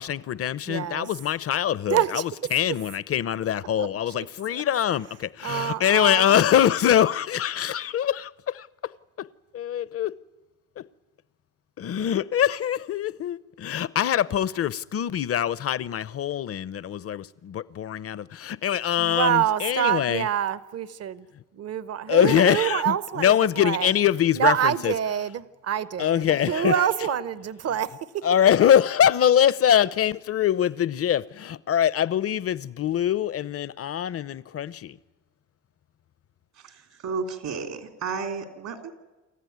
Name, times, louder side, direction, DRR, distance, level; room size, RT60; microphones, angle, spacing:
voice 1, 0.0-8.7 9.2-9.3 9.5-10.1 10.8-10.9 11.8-20.3 22.1-24.9 26.0-26.9 28.2-35.0, left 10 dB, 50° left, 0.7 m, -23 dB
voice 2, 0.7-1.1 1.9-2.3 3.8-4.3 4.5-4.6 5.4-6.4 19.0-21.2 21.6-23.9 24.3-28.3, right 10 dB, 55° right, 1.0 m, -26 dB
voice 3, 36.5-38.9, right 5 dB, 75° right, 3.3 m, -33 dB
28.0 x 14.5 x 9.4 m
cardioid pair, 90°, 30 cm